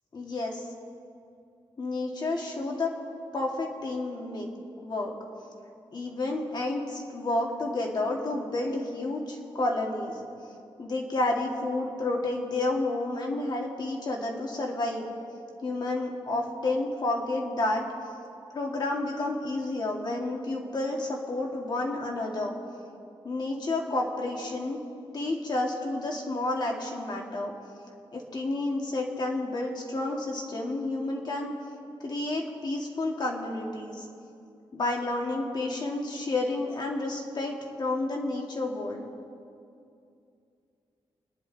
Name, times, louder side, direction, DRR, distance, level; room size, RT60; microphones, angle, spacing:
voice 1, 0.1-0.6 1.8-2.9 3.3-4.5 4.8-5.1 5.9-10.3 10.8-15.1 15.6-17.8 18.5-22.5 23.2-24.8 25.1-27.5 28.1-31.5 32.0-34.1 34.7-39.0, left 2 dB, 45° left, 0 dB, 2.1 m, -30 dB
27.5 x 10.5 x 4.1 m, 2.6 s
wide cardioid pair, 155°, 10 cm